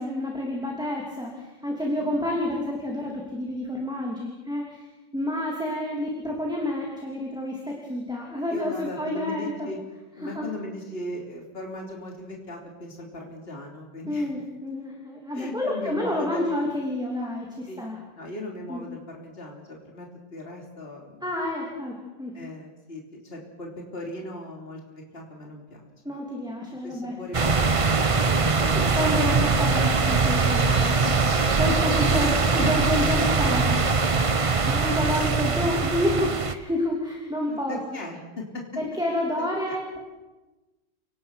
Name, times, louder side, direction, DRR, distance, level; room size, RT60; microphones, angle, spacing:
voice 1, 0.0-4.9 5.1-9.7 10.2-10.5 14.1-18.0 18.7-18.8 21.2-22.3 26.0-27.1 28.7-31.2 31.6-33.8 34.7-37.8 38.8-40.0, left 1 dB, ahead, -1 dB, 3.0 m, -29 dB
voice 2, 8.5-9.8 10.2-14.3 15.3-16.6 17.7-17.9 18.2-21.3 22.3-26.1 26.8-27.9 28.1-29.4 35.9-36.1 37.5-38.6 39.4-39.8, left 1 dB, 30° left, 0 dB, 3.6 m, -38 dB
sound 1, 27.3-36.5, right 4 dB, 35° right, 0.5 m, -22 dB
29.5 x 18.5 x 6.0 m, 1.1 s
omnidirectional pair, 2.0 m